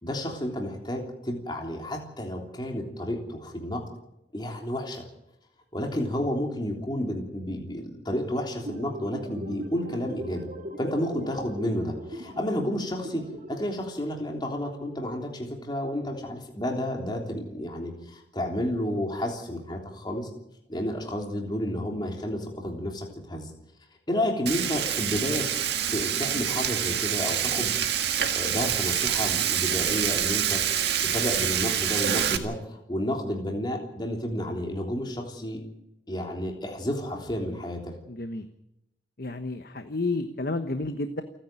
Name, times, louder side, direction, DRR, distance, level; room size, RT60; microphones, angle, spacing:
voice 1, 0.0-3.8 4.3-5.0 5.7-10.5 10.8-13.2 13.5-20.3 20.7-23.5 24.1-25.5 25.9-30.6 31.0-35.6 36.1-37.9, left 1 dB, 25° left, 1 dB, 3.4 m, -31 dB
sound 1, 8.6-13.6, equal, 45° right, 2.1 m, -39 dB
Frying (food), 24.5-32.4, right 9 dB, 65° right, 1.8 m, -26 dB
voice 2, 38.1-38.5 39.2-41.2, left 2 dB, 55° left, 8 dB, 1.2 m, -31 dB
28.5 x 10.5 x 9.0 m, 0.83 s
head